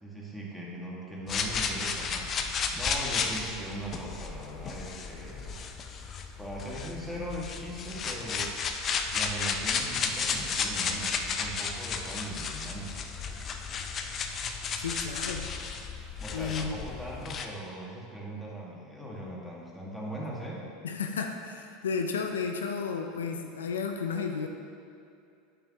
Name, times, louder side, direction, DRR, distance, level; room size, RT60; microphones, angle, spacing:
voice 1, 0.0-5.7 6.4-8.5 9.1-13.1 16.2-20.6, right 1 dB, ahead, -5 dB, 1.8 m, -39 dB
sound 1, 1.3-17.5, left 5 dB, 40° left, 0.6 m, -33 dB
voice 2, 14.8-15.5 16.3-16.8 20.8-24.5, left 5 dB, 85° left, 4 dB, 0.5 m, -33 dB
8.5 x 6.9 x 3.0 m, 2.5 s
hypercardioid pair, 85°, 0 cm